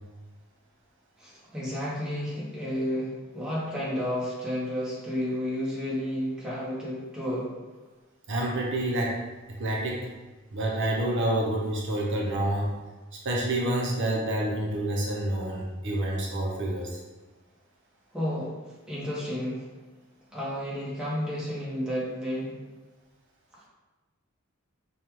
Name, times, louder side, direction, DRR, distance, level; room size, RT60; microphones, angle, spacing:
voice 1, 1.2-7.6 18.1-19.7 20.3-22.6 23.5-23.6, equal, 5° right, -7 dB, 0.9 m, -32 dB
voice 2, 8.3-9.1 9.6-10.1 10.5-12.7 13.2-17.0, right 1 dB, 60° right, -2 dB, 0.6 m, -28 dB
5.2 x 2.3 x 3.0 m, 1.2 s
head